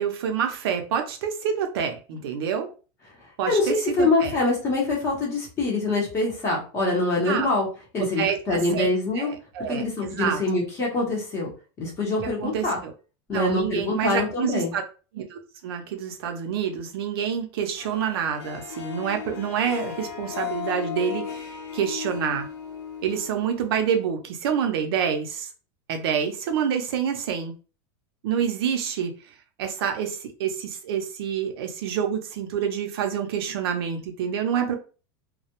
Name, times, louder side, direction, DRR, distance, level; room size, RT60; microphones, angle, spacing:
voice 1, 0.0-2.7 3.4-4.4 7.2-7.5 8.0-8.9 9.2-10.4 12.4-12.9 13.3-14.8 15.1-22.5 23.0-25.5 25.9-27.5 28.2-29.1 29.6-34.7, right 8 dB, 65° right, 5 dB, 0.5 m, -27 dB
voice 2, 3.5-7.7 7.9-9.3 9.7-11.5 11.8-12.8 13.3-14.7, left 2 dB, 20° left, -2 dB, 0.7 m, -24 dB
Harp, 17.8-24.0, left 9 dB, 80° left, 0.8 m, -35 dB
2.2 x 2.0 x 2.8 m, 0.35 s
supercardioid pair, 175°, 14 cm